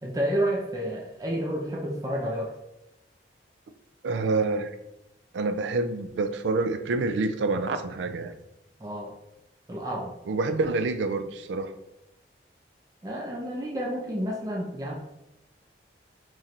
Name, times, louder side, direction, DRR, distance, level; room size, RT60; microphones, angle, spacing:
voice 1, 0.0-2.6 8.8-9.1 9.7-10.1 13.0-14.9, right 1 dB, 20° right, -2 dB, 0.4 m, -30 dB
voice 2, 4.0-4.7 5.3-8.4 10.3-11.7, right 3 dB, 85° right, 8 dB, 0.3 m, -27 dB
3.1 x 2.5 x 4.2 m, 0.88 s
head